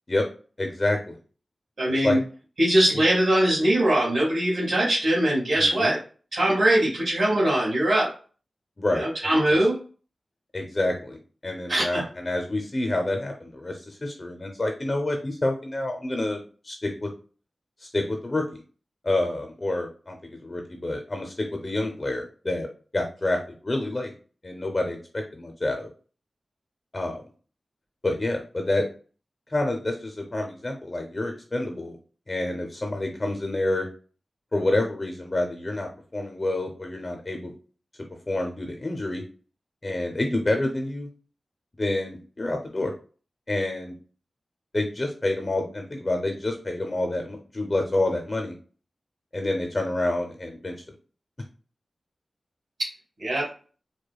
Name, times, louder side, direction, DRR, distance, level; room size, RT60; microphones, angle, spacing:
voice 1, 0.6-1.2 1.9-2.2 2.9-3.0 5.5-5.9 8.8-9.6 10.5-17.1 17.8-18.4 19.0-22.7 22.9-23.4 23.6-24.1 24.4-25.9 26.9-27.2 28.0-28.9 29.5-32.0 32.3-33.9 34.5-37.5 38.3-39.2 39.8-41.1 41.8-42.9 43.5-43.9 44.7-48.5 49.3-50.7, left 2 dB, 35° left, 4 dB, 0.6 m, -28 dB
voice 2, 1.8-2.2 2.6-6.0 6.3-8.1 8.9-9.7 11.7-12.0 53.2-53.5, right 1 dB, 65° right, -7 dB, 1.7 m, -21 dB
4.8 x 2.2 x 2.3 m, 0.38 s
wide cardioid pair, 75°, 0 cm